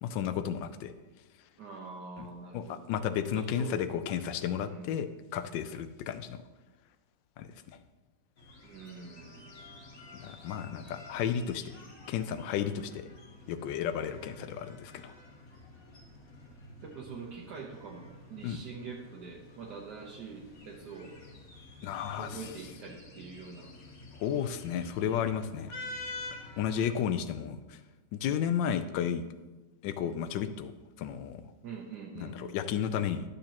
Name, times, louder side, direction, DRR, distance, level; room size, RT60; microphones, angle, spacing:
voice 1, 0.0-0.9 2.2-2.3 2.5-6.4 7.4-7.5 10.2-11.7 12.1-13.1 13.5-15.1 18.4-18.6 21.8-22.4 24.2-25.7 26.6-27.8 28.1-29.2 29.8-30.7 31.0-31.4 32.2-33.2, left 8 dB, 90° left, 11 dB, 1.3 m, -33 dB
voice 2, 1.6-2.9 3.3-3.7 4.6-5.5 8.6-9.4 16.8-21.1 22.2-23.7 31.6-32.6, right 5 dB, 70° right, -1 dB, 1.4 m, -45 dB
sound 1, 8.4-27.1, left 2 dB, 55° left, 1.6 m, -49 dB
11.5 x 6.7 x 2.9 m, 1.2 s
omnidirectional pair, 1.9 m